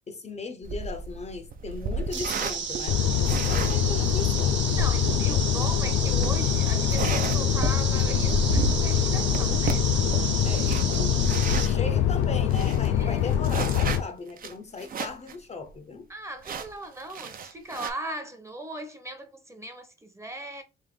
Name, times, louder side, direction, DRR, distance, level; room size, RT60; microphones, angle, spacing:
voice 1, 0.1-3.0 3.4-4.8 5.2-5.4 10.4-10.8 11.5-16.1, left 4 dB, 35° left, 0.6 m, -37 dB
sound 1, 0.6-11.8 12.2-12.3 12.5-15.4 15.7-15.8 16.4-17.9, right 5 dB, 45° right, 0.6 m, -34 dB
sound 2, 2.1-11.7, right 6 dB, 65° right, 1.0 m, -32 dB
sound 3, 2.9-14.0, left 9 dB, 85° left, 0.4 m, -24 dB
voice 2, 4.8-9.9 11.8-11.9 12.9-13.2 16.1-20.6, right 1 dB, 15° right, 0.8 m, -38 dB
3.4 x 2.6 x 3.7 m
cardioid pair, 90°, 20 cm